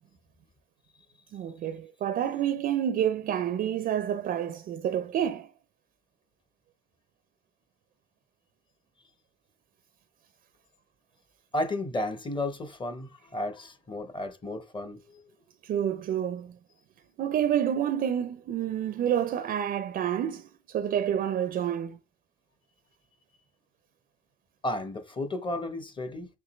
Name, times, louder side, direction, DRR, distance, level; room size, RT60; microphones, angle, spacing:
voice 1, 1.3-5.5 15.6-16.5 17.2-22.0, right 10 dB, 45° right, 0.5 m, -28 dB
voice 2, 11.5-15.0 24.6-26.3, left 1 dB, 25° left, 0.8 m, -33 dB
5.8 x 2.8 x 3.0 m
supercardioid pair, 90°, 21 cm